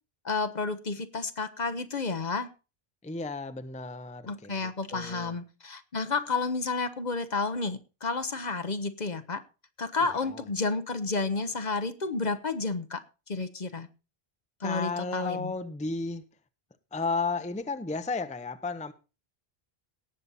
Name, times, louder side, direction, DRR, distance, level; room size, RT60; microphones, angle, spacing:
voice 1, 0.2-2.5 4.2-9.4 9.8-13.0 13.3-13.9 14.6-15.5, left 3 dB, 45° left, 10 dB, 1.0 m, -31 dB
voice 2, 3.0-5.3 10.3-10.4 14.6-16.2 16.9-18.9, left 3 dB, 10° left, 10 dB, 0.6 m, -33 dB
17.5 x 6.9 x 4.1 m, 0.31 s
omnidirectional pair, 1.0 m